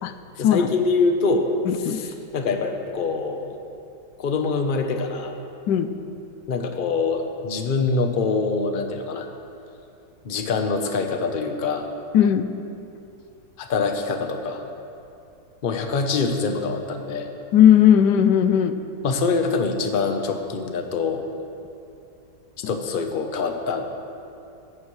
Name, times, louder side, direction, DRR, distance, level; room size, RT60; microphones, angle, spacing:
voice 1, 0.4-1.5 1.8-3.6 4.2-5.3 6.5-9.3 10.2-11.9 13.6-14.6 15.6-17.3 19.0-21.2 22.7-23.9, left 4 dB, 40° left, 5 dB, 0.9 m, -24 dB
voice 2, 1.7-2.0 5.7-5.9 12.1-12.5 17.5-18.7, left 9 dB, 90° left, 10 dB, 1.2 m, -17 dB
17.0 x 14.0 x 3.2 m, 2.7 s
omnidirectional pair, 1.8 m